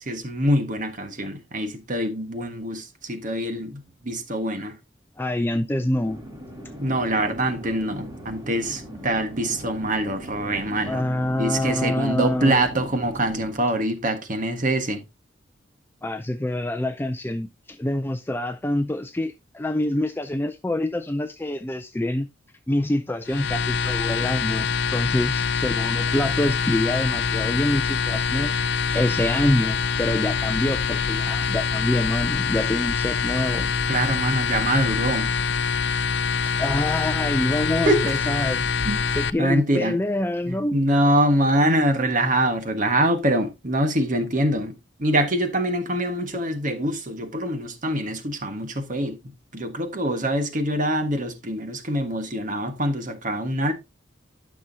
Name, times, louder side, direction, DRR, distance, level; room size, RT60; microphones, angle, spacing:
voice 1, 0.0-4.8 6.8-11.0 11.3-15.0 33.9-35.3 37.8-38.1 38.8-39.0 39.4-40.0 40.5-49.2 49.5-53.7, right 1 dB, 45° right, 1.5 m, -24 dB
voice 2, 5.2-6.2 10.9-12.6 16.0-22.3 22.7-28.5 28.9-33.7 36.4-38.6 39.2-40.7, left 1 dB, 10° left, 0.4 m, -26 dB
sound 1, 6.0-13.6, equal, 20° right, 2.7 m, -39 dB
sound 2, 23.3-39.3, left 6 dB, 65° left, 0.5 m, -25 dB
12.0 x 6.2 x 2.7 m
head